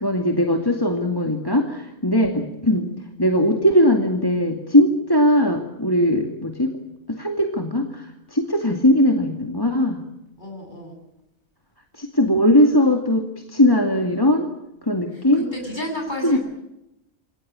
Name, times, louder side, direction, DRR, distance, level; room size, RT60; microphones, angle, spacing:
voice 1, 0.0-2.9 3.2-6.7 7.1-10.0 12.0-14.5 14.9-15.5 16.2-16.4, left 1 dB, 15° left, 3 dB, 2.3 m, -19 dB
voice 2, 10.4-11.0 15.3-16.4, equal, 35° left, 3 dB, 8.2 m, -31 dB
28.0 x 22.5 x 8.8 m, 0.87 s
omnidirectional pair, 1.4 m